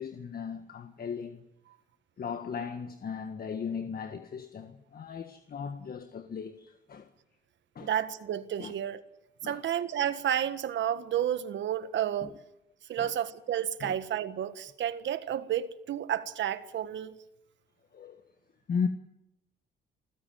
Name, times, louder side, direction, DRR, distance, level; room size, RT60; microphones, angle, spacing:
voice 1, 0.0-1.4 2.2-7.1 7.7-7.9 8.6-8.7 9.4-9.6 12.2-12.3 13.0-13.2 13.8-14.0 17.9-18.2 18.7-18.9, left 6 dB, 50° left, 1.6 m, -37 dB
voice 2, 7.8-9.0 9.4-12.3 12.9-17.1, right 10 dB, 70° right, 1.6 m, -31 dB
28.5 x 15.0 x 9.1 m
cardioid pair, 90°, 20 cm